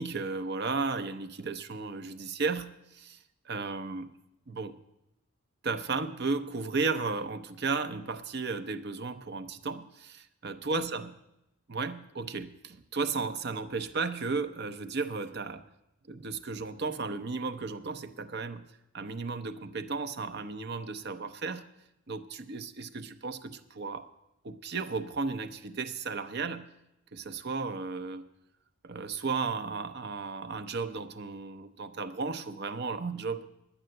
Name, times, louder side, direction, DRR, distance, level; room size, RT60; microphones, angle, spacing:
voice 1, 0.0-3.2 3.4-4.1 4.5-4.8 5.6-11.1 11.7-15.6 16.1-18.7 18.9-21.7 22.1-24.1 24.4-26.7 27.1-28.2 28.8-33.5, right 4 dB, 55° right, 10 dB, 0.7 m, -34 dB
10.0 x 9.9 x 7.7 m, 0.87 s
head